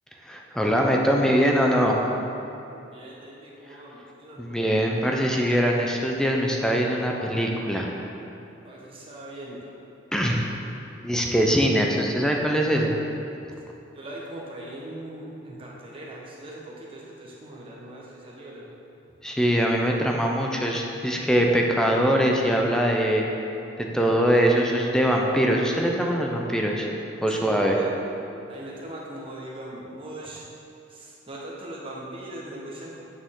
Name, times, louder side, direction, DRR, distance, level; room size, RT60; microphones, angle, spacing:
voice 1, 0.2-2.0 4.4-7.9 10.1-10.4 11.0-13.0 19.2-23.2 23.8-26.9 27.2-27.8, equal, 5° left, 0 dB, 0.6 m, -22 dB
voice 2, 2.9-4.5 8.6-9.8 13.9-18.7 27.3-27.9 28.5-30.4 30.9-33.0, right 1 dB, 25° right, -5 dB, 1.3 m, -40 dB
8.9 x 6.6 x 3.8 m, 2.8 s
head